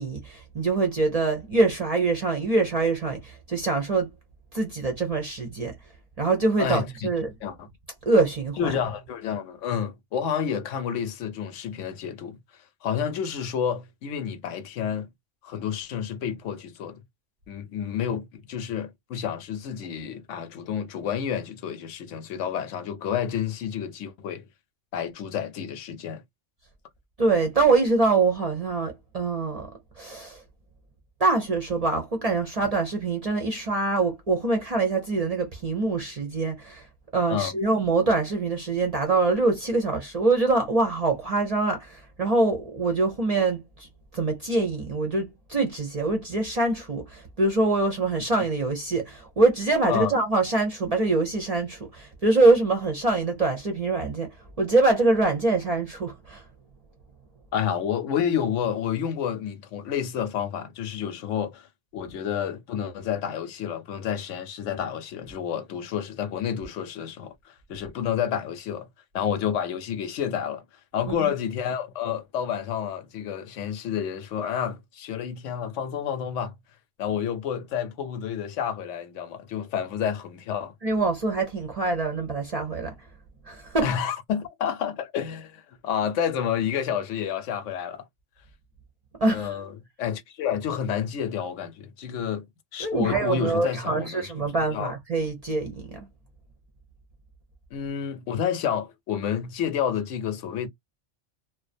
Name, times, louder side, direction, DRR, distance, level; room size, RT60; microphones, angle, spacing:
voice 1, 0.0-4.1 4.5-5.8 6.2-7.3 8.1-8.7 27.2-29.7 30.0-30.4 31.2-36.9 37.1-43.9 44.1-56.4 71.1-71.3 80.8-82.9 83.5-83.9 89.2-89.6 92.8-96.0, right 3 dB, 40° right, 0.6 m, -24 dB
voice 2, 6.6-7.1 7.4-7.7 8.6-12.4 12.8-15.1 15.4-17.0 17.5-24.4 24.9-26.2 37.3-37.5 49.9-50.1 57.5-61.7 61.9-68.9 69.1-70.6 70.9-76.5 77.0-80.7 83.8-88.1 89.3-89.7 90.0-92.5 92.7-94.5 94.7-94.9 97.7-100.7, left 8 dB, 80° left, 0.9 m, -29 dB
2.4 x 2.2 x 2.5 m
omnidirectional pair, 1.3 m